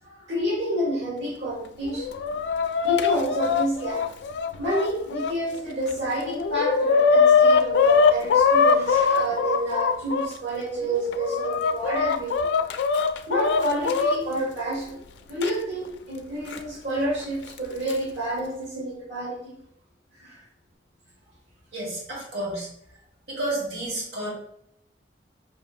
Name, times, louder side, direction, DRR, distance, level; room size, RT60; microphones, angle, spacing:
voice 1, 0.0-2.1 2.8-4.1 4.6-12.5 13.3-15.0 15.3-19.6 20.1-20.4, right 1 dB, 85° right, -6 dB, 1.3 m, -29 dB
Chicken rooster, 1.8-5.3 5.9-6.0 6.2-10.3 10.9-14.2 15.4-15.5 16.5-16.6 17.6-17.9, left 5 dB, 80° left, 0.3 m, -21 dB
voice 2, 21.7-22.7 23.3-24.3, right 1 dB, 65° right, -4 dB, 1.5 m, -30 dB
5.4 x 2.7 x 2.4 m, 0.73 s
head